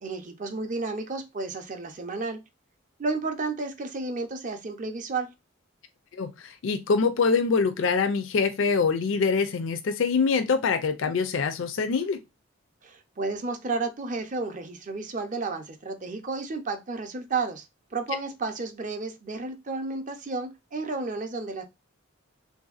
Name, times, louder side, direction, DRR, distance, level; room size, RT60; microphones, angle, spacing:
voice 1, 0.0-2.4 3.0-5.3 12.8-21.6, right 3 dB, 40° right, 0.5 m, -32 dB
voice 2, 6.1-12.2, left 5 dB, 70° left, 0.4 m, -24 dB
3.4 x 2.6 x 2.3 m
head